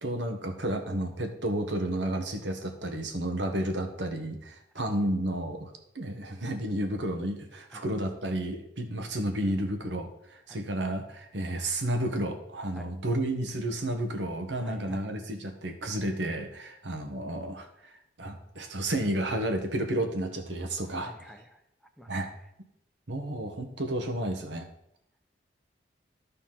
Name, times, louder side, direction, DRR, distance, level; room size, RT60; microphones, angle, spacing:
voice 1, 0.0-17.9 18.2-21.1 22.1-22.3 23.1-24.7, right 1 dB, 80° right, 5 dB, 1.3 m, -31 dB
voice 2, 14.6-15.1 20.9-21.6 22.0-22.4, equal, ahead, 5 dB, 0.6 m, -49 dB
12.0 x 4.2 x 5.7 m, 0.77 s
head